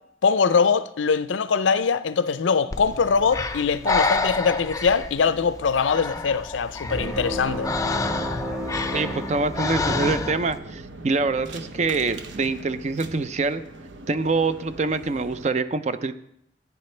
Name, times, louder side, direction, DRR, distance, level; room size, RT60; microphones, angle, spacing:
voice 1, 0.2-7.7, left 5 dB, 85° left, 0.5 m, -22 dB
Breathing, 2.7-10.6, left 3 dB, 20° left, 0.5 m, -29 dB
sound 1, 6.8-10.2, equal, 10° right, 1.1 m, -32 dB
sound 2, 7.3-15.5, right 2 dB, 80° right, 0.9 m, -41 dB
voice 2, 8.9-13.6 14.1-16.1, right 3 dB, 35° right, 0.4 m, -25 dB
14.5 x 9.6 x 3.2 m
head